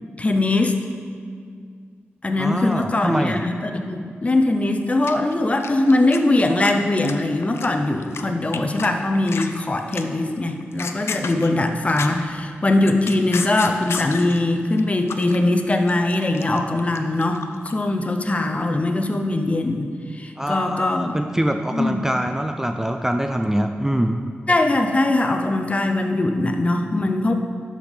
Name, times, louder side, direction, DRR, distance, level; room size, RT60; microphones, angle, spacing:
voice 1, 0.2-0.8 2.2-21.1 21.7-22.0 24.5-27.3, left 2 dB, 30° left, 5 dB, 0.6 m, -21 dB
voice 2, 2.4-3.4 20.4-24.2, right 1 dB, 10° right, 5 dB, 0.3 m, -24 dB
sound 1, 5.0-6.2 6.4-8.2 8.5-8.9 9.2-9.5 9.9-10.2 10.6-12.3 12.7-14.4 14.8-15.4 15.7-17.8, left 5 dB, 80° left, 0.4 m, -31 dB
11.5 x 5.2 x 3.4 m, 2.1 s
wide cardioid pair, 90°, 4 cm